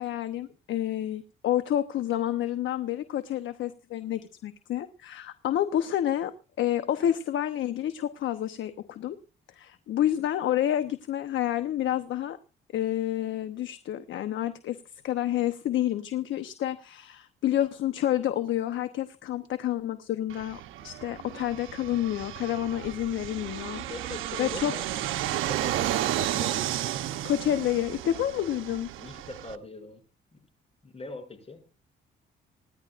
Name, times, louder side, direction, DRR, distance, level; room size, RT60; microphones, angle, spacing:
voice 1, 0.0-6.3 6.6-9.2 9.5-12.4 12.7-14.8 15.0-23.8 24.4-24.7 27.2-28.9, left 12 dB, 75° left, 10 dB, 1.0 m, -29 dB
Fixed-wing aircraft airplane, 20.3-29.6, right 12 dB, 85° right, 1.0 m, -33 dB
voice 2, 23.8-24.9 25.3-26.6 29.0-30.0 30.3-30.4 30.8-31.6, left 3 dB, 30° left, 5 dB, 7.3 m, -42 dB
27.0 x 10.5 x 2.6 m, 0.33 s
cardioid pair, 90°, 20 cm